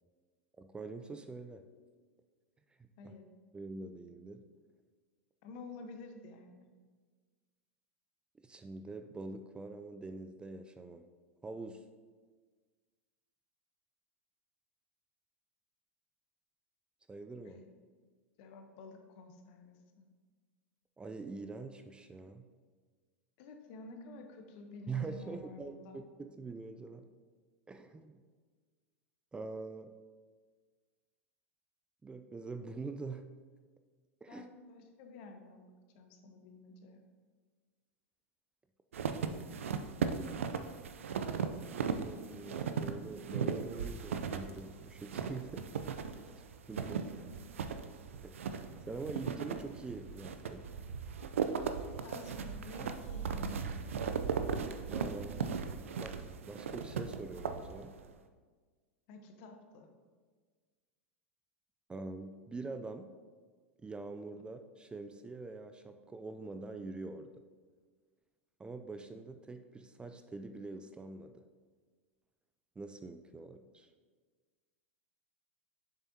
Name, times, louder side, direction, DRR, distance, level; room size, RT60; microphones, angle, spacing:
voice 1, 0.6-1.7 3.0-3.1 3.5-4.4 8.4-11.0 11.4-11.9 17.1-17.6 21.0-22.5 24.9-27.1 27.7-28.2 29.3-29.9 32.0-33.3 34.2-34.5 41.5-45.7 46.2-46.3 46.7-47.0 48.2-50.7 54.9-55.4 56.0-57.9 61.9-63.2 63.8-67.4 68.6-71.5 72.8-73.9, right 3 dB, 15° right, 7 dB, 0.4 m, -44 dB
voice 2, 5.4-6.7 17.4-17.7 18.4-20.0 23.4-26.0 34.3-37.1 46.8-47.0 52.0-53.9 59.1-59.9, left 3 dB, 55° left, 5 dB, 1.0 m, -51 dB
sound 1, 38.9-58.1, right 6 dB, 80° right, 0.5 m, -37 dB
7.4 x 6.8 x 2.8 m, 1.5 s
hypercardioid pair, 95°, 7 cm